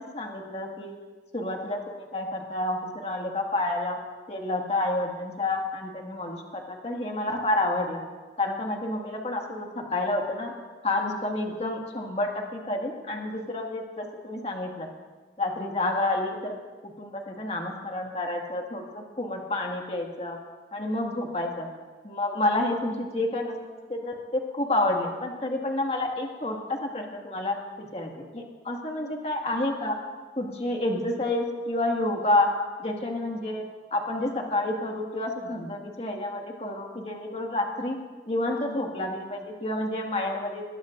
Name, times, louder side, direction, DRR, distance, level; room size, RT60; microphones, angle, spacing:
voice 1, 0.1-0.9 1.3-4.0 4.3-8.0 8.4-10.5 10.8-14.9 15.4-16.6 16.8-20.4 20.7-21.7 22.0-23.6 23.9-30.0 30.4-32.5 32.8-33.6 33.9-38.0 38.3-40.6, left 2 dB, 35° left, 0 dB, 2.0 m, -29 dB
21.0 x 20.5 x 2.6 m, 1.4 s
head